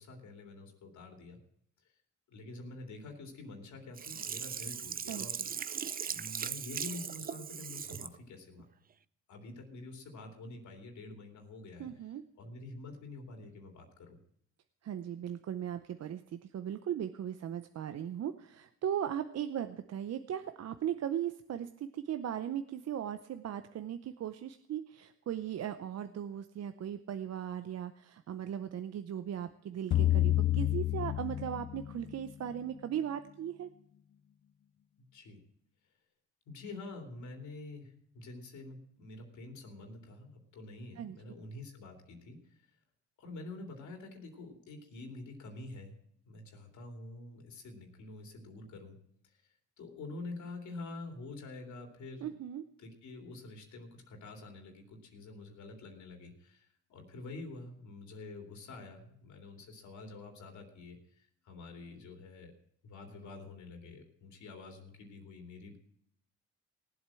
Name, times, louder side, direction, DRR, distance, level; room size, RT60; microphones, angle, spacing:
voice 1, 0.0-1.4 1.8-1.9 2.3-5.6 6.1-8.7 9.3-14.2 35.0-35.4 36.5-42.7 43.2-46.0 46.2-49.0 49.2-52.3 52.8-62.5 62.8-65.8, left 2 dB, 75° left, 3 dB, 3.0 m, -47 dB
Sink (filling or washing), 4.0-8.2 8.6-8.7, right 7 dB, 30° right, 0.5 m, -39 dB
voice 2, 5.1-5.5 11.8-12.2 14.8-33.7 41.0-41.2 52.2-52.6, right 10 dB, 55° right, 9 dB, 0.8 m, -38 dB
sound 1, 29.9-32.3, left 14 dB, 40° left, 0.5 m, -29 dB
17.5 x 8.0 x 7.6 m, 0.71 s
cardioid pair, 90°, 30 cm